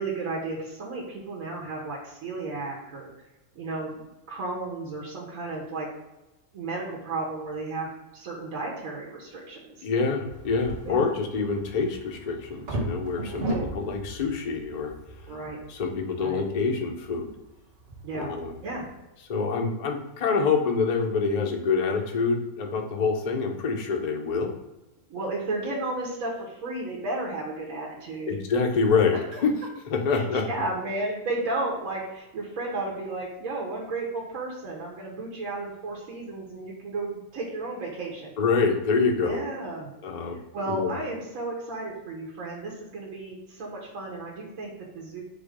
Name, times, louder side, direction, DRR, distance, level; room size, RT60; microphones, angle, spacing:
voice 1, 0.0-3.1 3.5-5.9 6.5-9.9 10.8-11.1 13.3-13.7 15.3-15.6 16.2-16.4 18.0-18.3 18.6-18.8 25.1-28.3 29.3-29.4 30.1-38.3 39.2-39.9 40.5-45.2, right 2 dB, 65° right, -3 dB, 1.3 m, -33 dB
voice 2, 9.8-14.9 15.7-17.3 18.1-18.6 19.3-24.5 28.3-29.5 29.9-30.5 38.4-39.4 40.0-40.4 40.7-41.0, left 4 dB, 75° left, 2 dB, 0.3 m, -26 dB
sound 1, 10.3-18.9, right 1 dB, 45° right, 1.1 m, -37 dB
4.3 x 2.6 x 4.7 m, 1.0 s
omnidirectional pair, 1.6 m